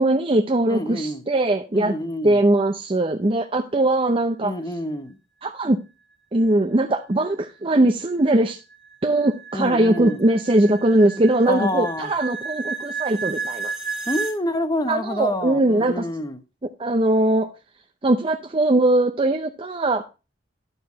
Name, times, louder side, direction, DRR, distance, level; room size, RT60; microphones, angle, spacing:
voice 1, 0.0-1.9 2.2-4.5 5.4-5.8 6.3-8.6 9.0-13.7 14.9-16.0 16.8-17.5 18.0-20.0, right 1 dB, 30° right, 0.7 m, -20 dB
voice 2, 0.7-1.2 1.7-2.4 4.4-5.2 9.5-10.2 11.5-12.1 14.1-16.4, left 1 dB, 20° left, 1.0 m, -27 dB
sound 1, 7.2-14.4, right 4 dB, 5° right, 1.9 m, -33 dB
10.5 x 6.7 x 4.0 m
head